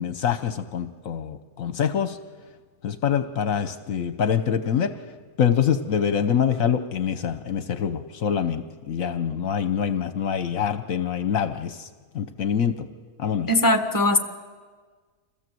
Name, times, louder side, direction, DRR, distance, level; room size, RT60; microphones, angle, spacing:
voice 1, 0.0-2.2 2.8-4.9 5.4-11.9 12.1-12.9 13.2-13.5, left 8 dB, 70° left, 10 dB, 1.2 m, -25 dB
voice 2, 13.5-14.2, left 1 dB, 15° left, 6 dB, 1.4 m, -19 dB
27.0 x 16.5 x 7.7 m, 1.5 s
omnidirectional pair, 1.5 m